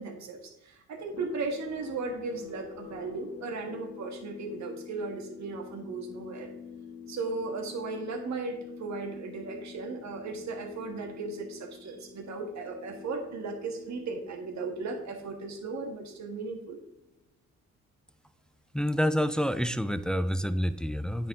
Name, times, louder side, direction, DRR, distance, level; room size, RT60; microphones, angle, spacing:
voice 1, 0.0-6.5 7.1-16.8, right 3 dB, 65° right, 2 dB, 1.7 m, -36 dB
sound 1, 1.0-17.3, left 7 dB, 50° left, 1.6 m, -47 dB
voice 2, 18.7-21.3, equal, 5° left, 12 dB, 0.3 m, -28 dB
9.3 x 4.3 x 3.7 m, 0.90 s
cardioid pair, 90°, 30 cm